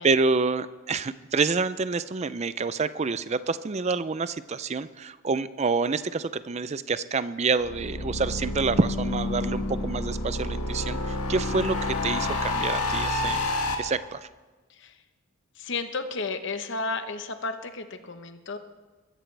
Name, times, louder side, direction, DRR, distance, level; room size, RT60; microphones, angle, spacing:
voice 1, 0.0-13.5 13.8-14.3, right 4 dB, 30° right, 14 dB, 0.4 m, -27 dB
sound 1, 7.6-13.7, left 2 dB, 90° left, 2.0 m, -29 dB
voice 2, 15.6-18.6, left 3 dB, 55° left, 8 dB, 1.0 m, -33 dB
22.5 x 13.5 x 3.3 m, 1.3 s
head